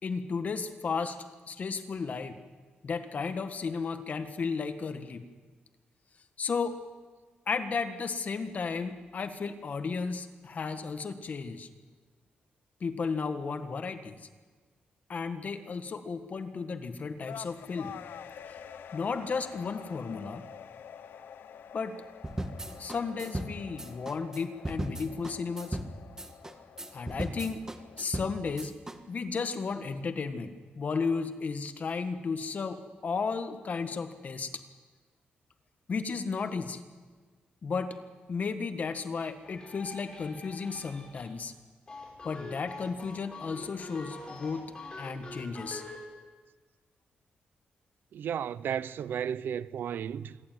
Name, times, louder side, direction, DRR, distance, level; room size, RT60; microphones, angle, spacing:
voice 1, 0.0-1.2 1.5-2.4 2.8-5.3 6.4-6.8 7.5-11.7 12.8-14.2 15.1-17.9 18.5-18.6 18.9-20.4 21.7-22.0 22.8-25.8 26.9-27.6 28.0-28.7 29.1-34.5 35.9-36.8 37.6-38.0 38.3-41.5 42.2-44.7 45.0-45.8, left 5 dB, 50° left, 1.6 m, -34 dB
sound 1, 17.3-28.0, left 8 dB, 80° left, 0.8 m, -48 dB
sound 2, 22.2-29.0, right 1 dB, 15° right, 1.5 m, -37 dB
sound 3, 39.4-41.5 41.9-46.0, left 3 dB, 30° left, 6.9 m, -45 dB
voice 2, 48.1-50.5, right 8 dB, 75° right, 0.6 m, -34 dB
26.5 x 11.5 x 9.4 m
cardioid pair, 105°, 3 cm